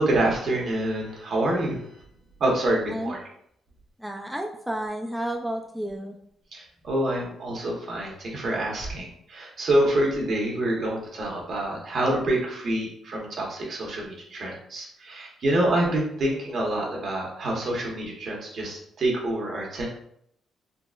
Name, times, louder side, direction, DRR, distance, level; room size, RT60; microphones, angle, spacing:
voice 1, 0.0-1.8 2.4-3.2 6.5-19.9, right 1 dB, 60° right, -2 dB, 0.9 m, -26 dB
voice 2, 4.0-6.2, right 1 dB, 5° right, 1 dB, 0.3 m, -31 dB
3.7 x 2.0 x 2.4 m, 0.70 s
cardioid pair, 75°, 0 cm